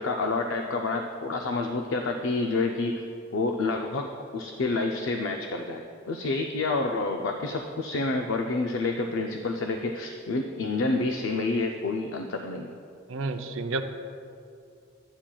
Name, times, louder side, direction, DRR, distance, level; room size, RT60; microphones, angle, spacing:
voice 1, 0.0-3.0 3.3-12.7, left 3 dB, 70° left, 4 dB, 0.4 m, -28 dB
voice 2, 13.1-13.8, right 3 dB, 75° right, 7 dB, 0.5 m, -30 dB
11.5 x 8.8 x 2.3 m, 2.4 s
head